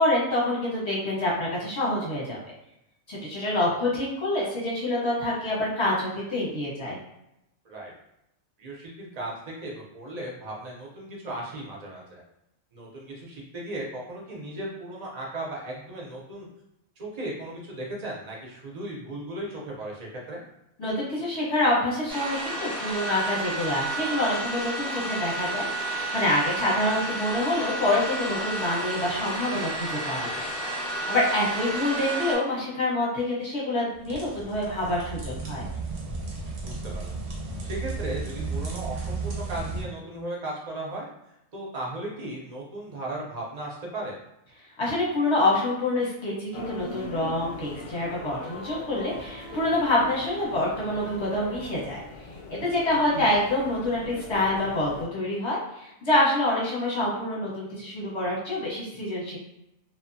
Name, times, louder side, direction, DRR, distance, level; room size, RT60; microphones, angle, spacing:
voice 1, 0.0-2.4 3.1-7.0 20.8-30.5 31.1-35.6 44.8-52.0 52.5-59.4, left 1 dB, 25° left, -5 dB, 0.8 m, -26 dB
voice 2, 8.6-12.2 12.7-16.5 17.0-20.5 36.6-37.2 37.6-41.1 41.5-44.2 53.1-53.3, right 1 dB, 40° right, -3 dB, 0.7 m, -36 dB
sound 1, 22.1-32.4, right 2 dB, ahead, 0.9 m, -31 dB
sound 2, 33.9-39.8, right 3 dB, 80° right, 1.0 m, -34 dB
sound 3, 46.5-55.1, left 2 dB, 65° left, 0.7 m, -40 dB
2.7 x 2.1 x 2.6 m, 0.86 s
omnidirectional pair, 1.2 m